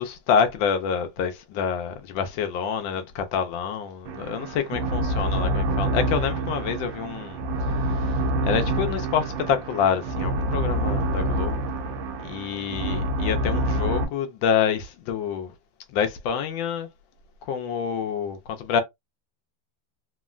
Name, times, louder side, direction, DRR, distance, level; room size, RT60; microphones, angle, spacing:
voice 1, 0.0-7.4 7.9-11.6 12.2-15.5 15.9-16.9 17.5-18.8, left 7 dB, 80° left, 1.3 m, -27 dB
sound 1, 4.1-14.1, right 1 dB, 75° right, 1.4 m, -27 dB
3.6 x 2.1 x 2.3 m
omnidirectional pair, 2.2 m